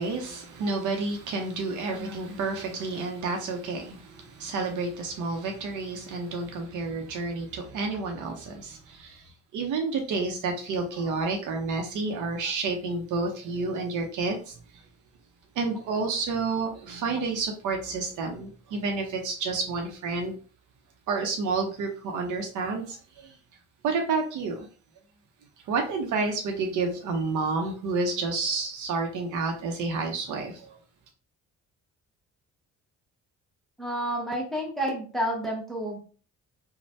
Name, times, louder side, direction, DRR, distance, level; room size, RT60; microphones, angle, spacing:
voice 1, 0.0-14.5 15.6-20.4 21.1-23.3 23.8-24.7 25.7-30.8, right 4 dB, 75° right, 0.6 m, -30 dB
voice 2, 33.8-36.0, equal, ahead, 0.7 m, -30 dB
3.1 x 2.1 x 2.6 m
cardioid pair, 90°, 30 cm